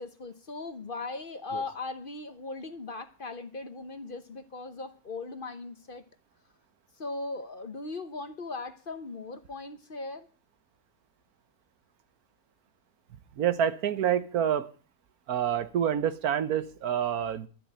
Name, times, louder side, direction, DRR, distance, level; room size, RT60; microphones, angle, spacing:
voice 1, 0.0-6.0 7.0-10.3, left 3 dB, 40° left, 1.0 m, -38 dB
voice 2, 13.3-14.7 15.3-17.5, right 9 dB, 85° right, 1.4 m, -27 dB
12.5 x 7.7 x 8.7 m
omnidirectional pair, 1.6 m